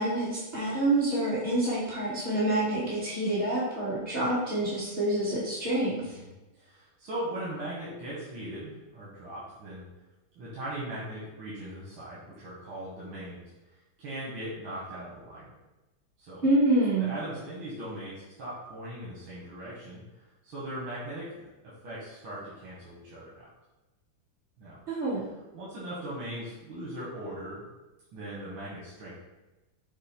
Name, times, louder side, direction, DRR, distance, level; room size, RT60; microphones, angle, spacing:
voice 1, 0.0-6.2 16.4-17.2 24.9-25.3, right 1 dB, 30° right, -11 dB, 1.0 m, -27 dB
voice 2, 6.0-6.3 6.6-9.8 10.4-13.4 14.0-15.5 16.2-16.4 17.0-23.5 24.6-24.8 25.5-27.7 28.1-29.1, right 1 dB, 90° right, -8 dB, 1.8 m, -39 dB
5.7 x 2.1 x 4.2 m, 1.1 s
omnidirectional pair, 2.2 m